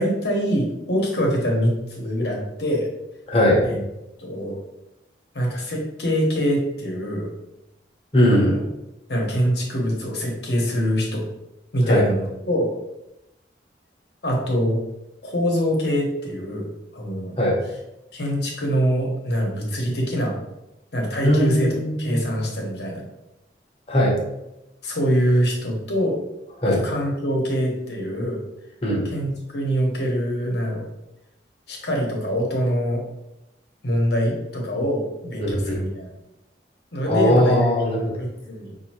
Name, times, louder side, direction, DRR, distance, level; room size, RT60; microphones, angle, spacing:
voice 1, 0.0-2.9 3.6-3.8 4.2-4.6 5.3-7.3 8.3-8.6 9.1-11.3 11.7-12.7 14.2-14.8 15.2-17.3 18.1-20.4 20.9-23.0 24.8-26.2 26.6-28.4 29.0-30.9 31.7-33.0 33.8-36.1 36.9-37.7 38.2-38.7, equal, 65° left, 0 dB, 1.0 m, -24 dB
voice 2, 3.3-3.7 8.1-8.6 11.9-12.0 17.4-17.6 21.2-22.2 23.9-24.2 26.6-26.8 28.8-29.1 35.4-35.8 37.1-38.1, equal, 30° left, -2 dB, 0.9 m, -19 dB
5.4 x 2.6 x 2.9 m, 0.90 s
head